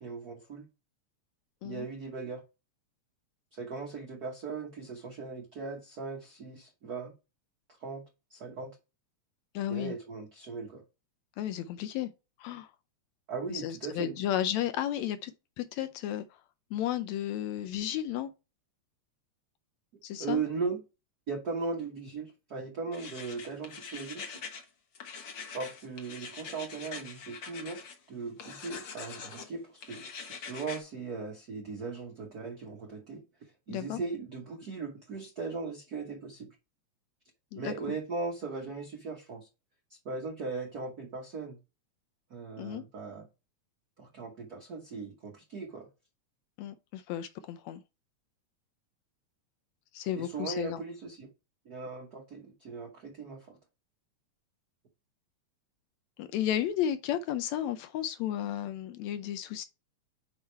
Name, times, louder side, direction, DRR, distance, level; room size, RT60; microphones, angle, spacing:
voice 1, 0.0-0.7 1.6-2.4 3.5-7.1 7.8-8.0 8.3-8.8 9.7-10.8 13.3-14.2 20.2-20.8 21.3-24.2 25.5-36.5 37.5-39.5 39.9-41.6 42.3-43.3 44.0-45.9 50.2-51.3 51.6-53.6, right 4 dB, 75° right, 0.8 m, -38 dB
voice 2, 9.5-9.9 11.4-12.1 12.4-12.7 13.5-15.3 15.6-16.3 16.7-18.3 20.0-20.4 33.7-34.0 37.5-38.0 42.6-42.8 46.6-47.8 49.9-50.8 56.2-59.6, left 11 dB, 80° left, 1.7 m, -33 dB
sound 1, 22.9-24.6 24.9-27.9 28.4-29.5 29.8-30.8, left 5 dB, 60° left, 1.2 m, -44 dB
5.5 x 4.9 x 4.4 m
omnidirectional pair, 3.4 m